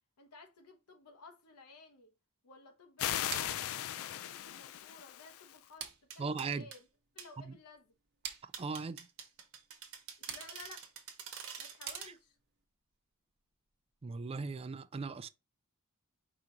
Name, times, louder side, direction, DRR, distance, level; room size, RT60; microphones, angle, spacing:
voice 1, 0.2-2.1 2.4-6.9 7.1-7.9 10.3-10.8 11.6-12.3, left 3 dB, 85° left, 0.8 m, -55 dB
sound 1, 3.0-5.6, left 12 dB, 65° left, 0.3 m, -38 dB
sound 2, 3.3-12.6, right 8 dB, 50° right, 0.8 m, -50 dB
sound 3, 5.8-6.8 7.2-7.3 8.5-12.1, right 7 dB, 70° right, 1.1 m, -47 dB
voice 2, 6.2-6.7 7.5-7.6 8.6-9.1 14.0-15.3, right 4 dB, 25° right, 0.3 m, -38 dB
4.9 x 2.9 x 3.7 m
head